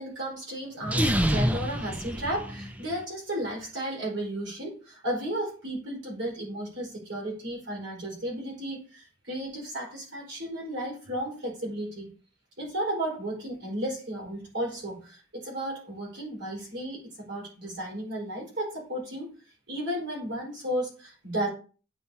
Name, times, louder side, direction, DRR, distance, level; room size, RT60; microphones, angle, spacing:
voice 1, 0.0-12.1 12.6-19.3 19.7-21.5, right 1 dB, 80° right, -3 dB, 4.5 m, -34 dB
sound 1, 0.8-3.0, equal, 10° right, 0.4 m, -27 dB
8.9 x 5.8 x 2.8 m, 0.36 s
head